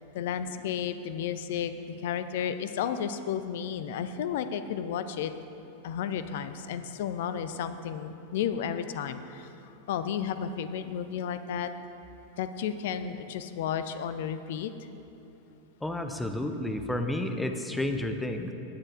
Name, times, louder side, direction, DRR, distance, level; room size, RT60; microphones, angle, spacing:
voice 1, 0.0-5.3 5.8-9.5 9.9-11.7 12.4-14.7, left 8 dB, 55° left, 11 dB, 0.4 m, -32 dB
voice 2, 15.8-18.5, left 1 dB, 5° left, 6 dB, 0.6 m, -31 dB
17.0 x 7.5 x 2.4 m, 2.9 s
figure-of-eight pair, 90°, 0 cm